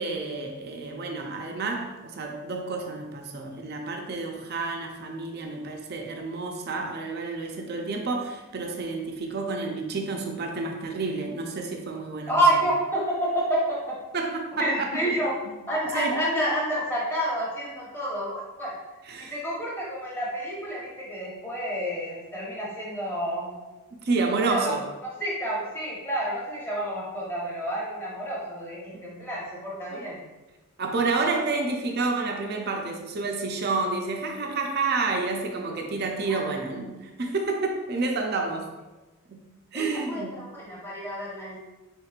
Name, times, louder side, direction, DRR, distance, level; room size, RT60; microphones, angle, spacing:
voice 1, 0.0-12.6 14.1-14.7 15.0-15.5 15.9-16.2 19.0-19.3 24.0-24.8 28.9-29.1 29.9-30.1 30.8-38.7 39.3-39.4 39.7-40.4, right 3 dB, 45° right, 2 dB, 0.5 m, -29 dB
voice 2, 12.3-14.0 14.6-15.3 15.7-18.7 19.2-23.5 24.5-24.7 25.0-30.2 36.3-36.5 39.7-41.6, right 1 dB, 10° left, -6 dB, 0.9 m, -29 dB
4.4 x 3.6 x 2.4 m, 1.1 s
head